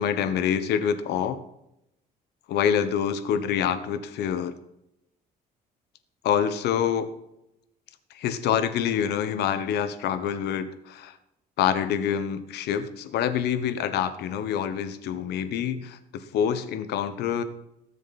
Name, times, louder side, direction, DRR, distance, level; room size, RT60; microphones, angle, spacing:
voice 1, 0.0-1.4 2.5-4.5 6.2-7.1 8.1-11.1 11.6-17.4, left 8 dB, 75° left, 11 dB, 1.3 m, -26 dB
19.0 x 7.4 x 4.3 m, 0.83 s
cardioid pair, 110°, 17 cm